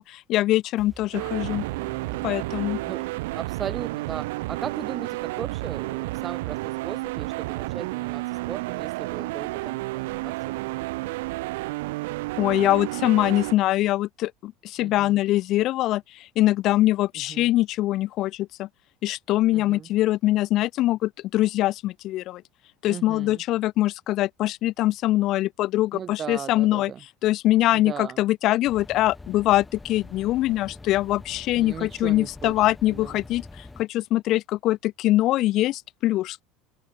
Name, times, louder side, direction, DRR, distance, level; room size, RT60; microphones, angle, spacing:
voice 1, 0.0-1.6 2.2-2.8 12.4-18.7 19.0-22.4 22.8-26.9 27.2-36.4, left 15 dB, 50° left, 0.4 m, -23 dB
sound 1, 0.8-3.8, right 3 dB, 10° right, 2.1 m, -47 dB
sound 2, 1.1-13.5, right 21 dB, 85° right, 0.7 m, -31 dB
voice 2, 2.6-11.4 14.8-15.2 17.1-17.5 19.5-19.9 22.8-23.4 25.9-27.0 27.7-28.2 31.6-32.6 32.9-33.2, right 8 dB, 35° right, 2.1 m, -38 dB
sound 3, 28.7-33.8, left 2 dB, 10° left, 1.7 m, -45 dB
open air
supercardioid pair, 120°, 0 cm